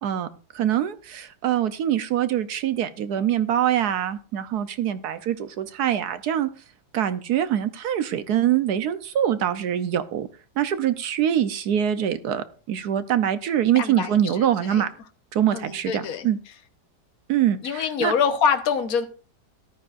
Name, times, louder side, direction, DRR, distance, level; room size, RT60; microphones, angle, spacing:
voice 1, 0.5-6.5 6.9-10.3 10.6-14.9 15.3-16.4 17.3-18.1, right 10 dB, 70° right, 12 dB, 1.3 m, -24 dB
voice 2, 13.8-14.8 15.5-16.3 17.6-19.1, left 6 dB, 60° left, 6 dB, 1.6 m, -25 dB
14.0 x 12.5 x 2.5 m, 0.37 s
omnidirectional pair, 1.8 m